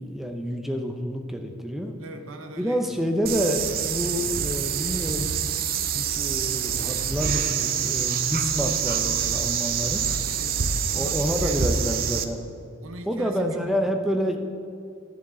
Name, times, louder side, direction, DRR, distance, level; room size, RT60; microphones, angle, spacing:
voice 1, 0.0-1.9 2.6-5.3 5.9-10.1 10.9-12.5 13.1-14.4, equal, ahead, 4 dB, 0.6 m, -28 dB
voice 2, 2.0-3.1 10.0-11.6 11.9-12.1 12.8-13.9, right 1 dB, 90° right, 6 dB, 0.8 m, -41 dB
sound 1, 3.3-12.2, right 7 dB, 45° right, 0.5 m, -26 dB
11.5 x 7.1 x 3.8 m, 2.4 s
head